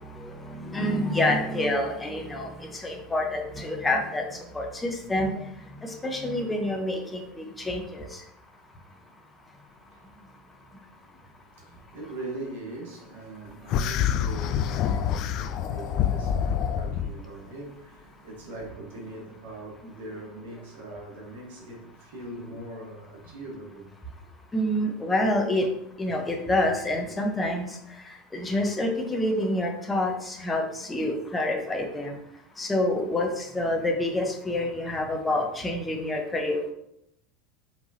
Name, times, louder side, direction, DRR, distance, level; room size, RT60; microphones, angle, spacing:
voice 1, 0.5-2.5 2.8-4.2 4.5-5.3 5.8-8.0 24.5-25.7 26.0-27.7 28.3-32.2 32.6-36.7, left 1 dB, 15° left, 1.0 m, -27 dB
voice 2, 11.6-23.9 24.2-24.3 26.4-26.5 28.5-28.6, right 2 dB, 65° right, 1.5 m, -41 dB
sound 1, 13.7-17.1, left 8 dB, 50° left, 0.3 m, -26 dB
4.7 x 3.5 x 2.8 m
figure-of-eight pair, 75°, 0 cm